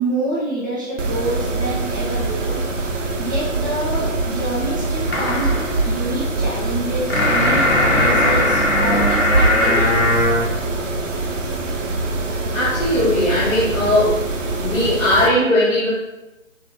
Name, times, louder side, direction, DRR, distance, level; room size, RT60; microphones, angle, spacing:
voice 1, 0.0-2.6 3.2-10.3, right 2 dB, 15° right, -9 dB, 0.8 m, -27 dB
Mechanisms, 1.0-15.3, right 2 dB, 65° right, 0.8 m, -24 dB
sound 1, 5.1-10.4, left 1 dB, 50° left, 1.1 m, -19 dB
voice 2, 12.5-14.2 14.6-15.9, left 1 dB, 70° left, -8 dB, 1.6 m, -18 dB
7.3 x 2.9 x 2.4 m, 1.0 s
figure-of-eight pair, 160°, 40 cm